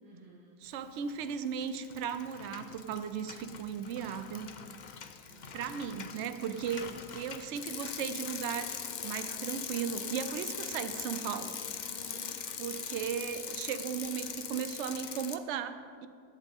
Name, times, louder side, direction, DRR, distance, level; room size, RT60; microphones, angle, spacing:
voice 1, 0.0-0.6 5.3-6.0 6.9-7.0 11.8-12.3, right 1 dB, 30° right, -6 dB, 1.8 m, -53 dB
voice 2, 0.6-4.5 5.5-11.5 12.6-16.1, right 8 dB, 60° right, 11 dB, 0.8 m, -36 dB
Bicycle, 0.9-1.3 1.6-15.4, left 7 dB, 65° left, 0.4 m, -41 dB
16.5 x 11.5 x 3.6 m, 2.3 s
omnidirectional pair, 1.6 m